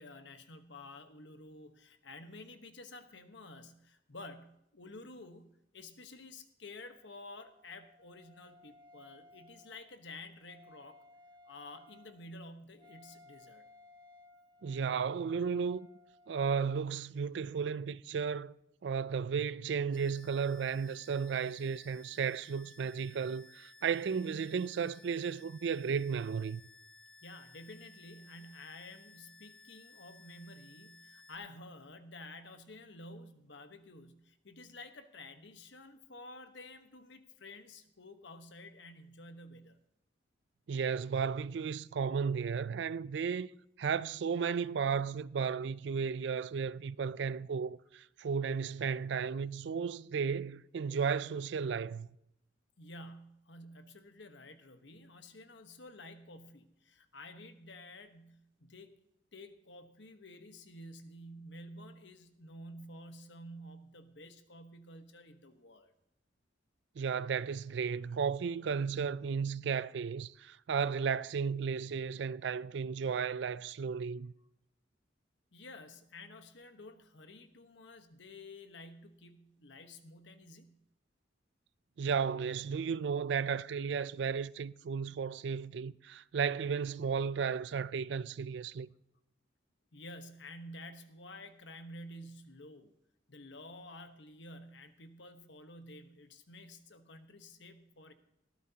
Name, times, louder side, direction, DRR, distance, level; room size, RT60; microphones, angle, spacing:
voice 1, 0.0-11.0 11.4-13.7 27.2-39.8 52.8-59.0 59.3-65.9 75.5-80.8 89.9-92.9 93.3-98.1, left 1 dB, 65° left, 1.2 m, -51 dB
Wind instrument woodwind instrument, 6.7-16.7, left 2 dB, 25° right, 1.3 m, -60 dB
voice 2, 14.6-15.9 16.3-18.5 18.8-26.6 40.7-43.5 43.8-52.1 67.0-74.3 82.0-88.9, right 6 dB, 65° right, 0.4 m, -34 dB
sound 1, 19.9-31.3, left 3 dB, 5° left, 1.0 m, -58 dB
19.5 x 14.5 x 2.8 m
head